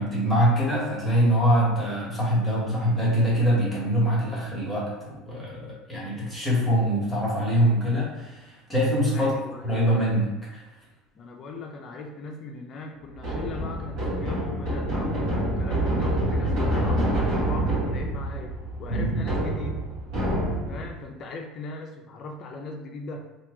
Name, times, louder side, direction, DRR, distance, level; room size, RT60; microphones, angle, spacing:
voice 1, 0.0-9.3 9.6-10.6 18.9-19.2, equal, 10° left, -6 dB, 1.2 m, -24 dB
voice 2, 9.1-9.8 11.1-19.8 20.7-23.3, left 2 dB, 40° left, 3 dB, 0.5 m, -39 dB
sound 1, 13.1-20.9, right 1 dB, 65° right, 1.3 m, -27 dB
2.8 x 2.7 x 3.6 m, 1.0 s
cardioid pair, 135°, 0 cm